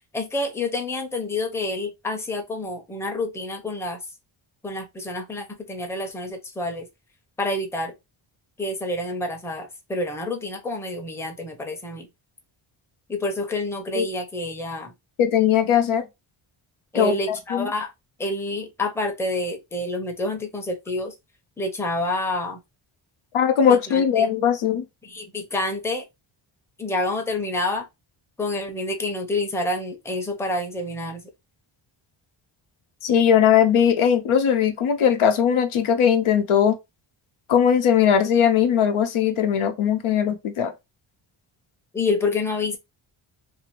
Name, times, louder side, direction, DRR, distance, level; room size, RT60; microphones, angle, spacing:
voice 1, 0.1-4.0 4.6-6.9 7.4-7.9 8.6-12.1 13.1-14.9 16.9-17.9 18.2-21.1 21.6-22.6 23.7-24.4 25.0-26.0 26.8-27.9 28.4-31.2 41.9-42.8, left 2 dB, 5° left, 0.5 m, -28 dB
voice 2, 15.2-16.1 16.9-17.7 23.3-24.8 33.0-36.8 37.5-40.7, left 8 dB, 90° left, 0.7 m, -19 dB
2.7 x 2.4 x 2.9 m
wide cardioid pair, 110°, 48 cm